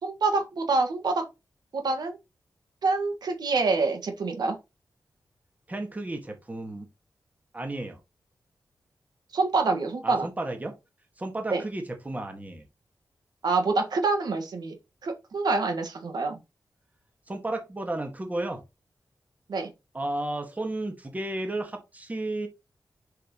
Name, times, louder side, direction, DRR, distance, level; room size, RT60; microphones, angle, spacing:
voice 1, 0.0-1.2 1.7-2.2 2.8-4.6 9.3-10.3 11.5-11.6 13.4-14.7 15.0-16.4 19.5-19.7, right 3 dB, 75° right, 1.6 m, -26 dB
voice 2, 5.7-6.9 7.5-8.0 10.0-10.7 11.2-12.7 17.3-18.6 19.9-22.5, right 2 dB, 20° right, 1.7 m, -33 dB
7.1 x 5.8 x 3.0 m
wide cardioid pair, 125°, 7 cm